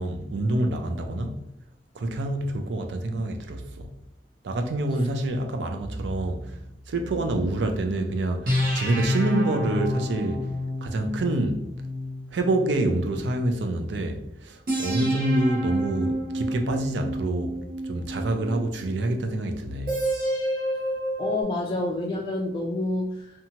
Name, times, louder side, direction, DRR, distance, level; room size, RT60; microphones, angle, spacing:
voice 1, 0.0-1.4 1.9-3.9 4.4-6.6 6.9-10.5 10.8-11.6 12.3-17.6 17.8-20.0, right 1 dB, 80° right, 0.4 m, -27 dB
sound 1, 5.8-7.8 8.5-13.7 14.7-18.9 19.9-21.4, equal, 55° right, 0.8 m, -29 dB
voice 2, 21.2-23.4, left 2 dB, 30° left, 0.3 m, -28 dB
2.8 x 2.2 x 2.8 m
head